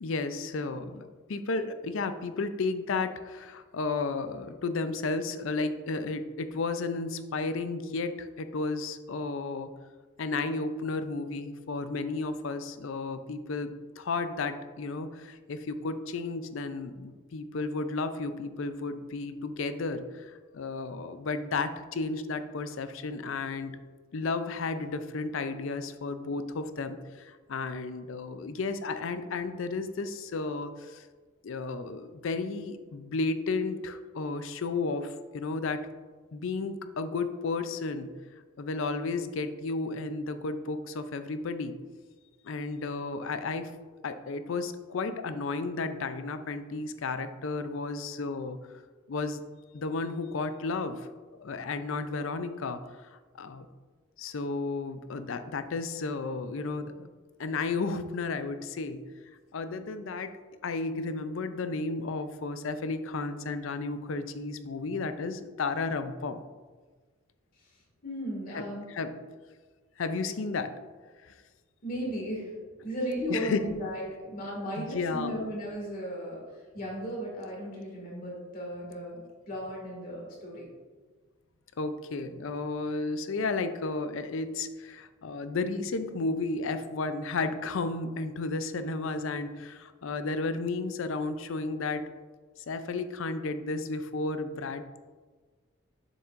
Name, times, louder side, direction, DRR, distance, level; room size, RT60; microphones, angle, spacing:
voice 1, 0.0-9.7 10.2-23.8 24.1-31.1 31.4-35.8 36.3-38.1 38.6-41.8 42.4-43.7 44.0-48.6 49.1-49.4 49.7-52.8 53.4-53.7 54.2-57.0 57.4-59.0 59.5-60.4 60.6-66.4 68.5-69.1 70.0-70.7 71.2-71.3 73.3-73.7 74.8-75.5 81.8-92.0 92.6-95.0, left 3 dB, 70° left, 10 dB, 0.5 m, -33 dB
voice 2, 68.0-68.9 71.8-72.5 72.8-76.4 76.7-80.7, equal, 40° left, -3 dB, 2.0 m, -35 dB
7.1 x 6.9 x 2.5 m, 1.4 s
head